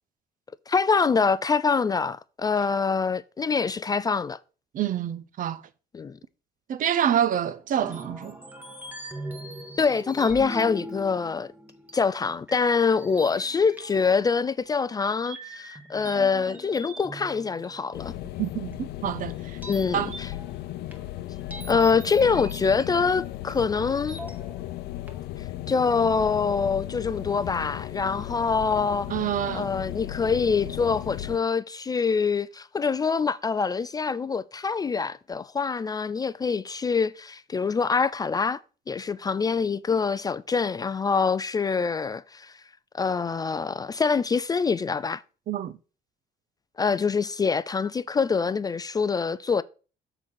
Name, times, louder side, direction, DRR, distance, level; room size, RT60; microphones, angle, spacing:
voice 1, 0.7-4.4 5.9-6.2 9.8-11.5 11.9-18.1 19.7-20.3 21.7-24.2 25.7-29.1 29.5-38.6 38.9-42.6 42.9-45.2 46.8-49.6, left 5 dB, 20° left, 0.3 m, -25 dB
voice 2, 4.7-5.6 6.7-8.4 18.4-19.6 19.9-20.1 29.1-29.7 45.5-45.8, right 10 dB, 50° right, 0.6 m, -27 dB
sound 1, 7.8-12.2 12.5-14.7 15.3-18.3 18.7-18.8 19.6-23.1 23.5-23.6 24.1-24.8 25.1-25.2, equal, 10° right, 1.6 m, -41 dB
sound 2, 17.9-31.4, left 15 dB, 75° left, 0.6 m, -36 dB
7.2 x 3.9 x 6.3 m
cardioid pair, 110°, 17 cm